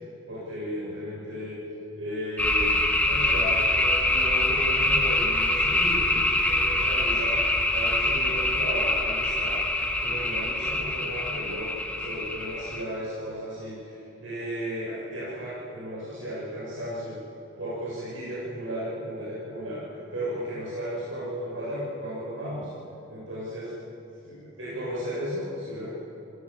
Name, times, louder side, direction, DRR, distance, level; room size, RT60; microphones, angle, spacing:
voice 1, 0.3-1.6 2.0-2.7 3.1-7.4 7.7-9.7 10.0-17.2 17.6-22.7 23.1-23.7 24.2-25.9, equal, 70° right, -9 dB, 7.4 m, -34 dB
sound 1, 2.4-12.8, left 1 dB, 5° left, 1.7 m, -25 dB
28.5 x 17.5 x 7.4 m, 2.8 s
head